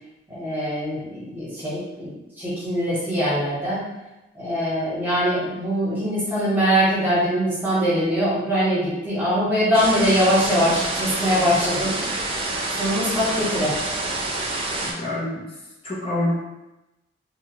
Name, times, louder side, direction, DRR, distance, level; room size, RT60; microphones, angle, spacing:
voice 1, 0.3-2.1 2.4-3.8 4.3-12.0 12.7-13.7, equal, 10° right, -9 dB, 1.0 m, -22 dB
sound 1, 9.7-14.9, right 2 dB, 30° right, 0.4 m, -27 dB
voice 2, 14.8-15.5 15.8-16.4, left 1 dB, 30° left, -8 dB, 0.5 m, -26 dB
2.6 x 2.3 x 2.9 m, 0.99 s
head